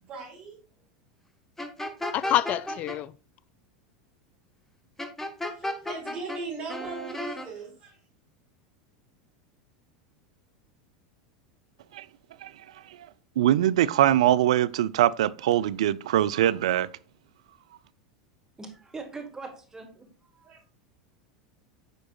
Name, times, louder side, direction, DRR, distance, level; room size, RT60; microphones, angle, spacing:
voice 1, 0.1-0.6 5.4-8.0 20.5-20.6, right 4 dB, 45° right, 3.3 m, -39 dB
sound 1, 1.6-3.0 5.0-6.4 6.7-7.5, left 1 dB, 10° left, 1.0 m, -33 dB
voice 2, 2.1-3.1, left 13 dB, 45° left, 0.3 m, -27 dB
voice 3, 13.4-16.9, right 12 dB, 70° right, 0.3 m, -22 dB
voice 4, 18.6-20.6, right 4 dB, 15° right, 1.3 m, -42 dB
9.0 x 4.6 x 2.3 m
hypercardioid pair, 85°, 3 cm